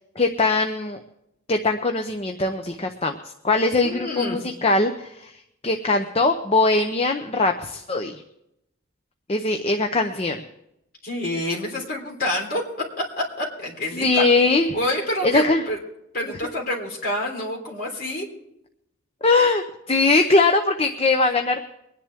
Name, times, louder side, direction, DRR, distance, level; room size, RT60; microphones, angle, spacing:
voice 1, 0.2-1.0 1.5-3.2 3.4-5.3 5.6-8.2 9.3-10.4 13.9-14.7 15.2-15.6 19.2-21.6, left 3 dB, 30° left, 5 dB, 0.7 m, -21 dB
voice 2, 3.8-4.4 11.0-12.6 13.2-14.2 14.7-15.8 16.1-18.3, left 1 dB, 45° left, -1 dB, 3.6 m, -27 dB
24.0 x 10.5 x 3.6 m, 0.83 s
head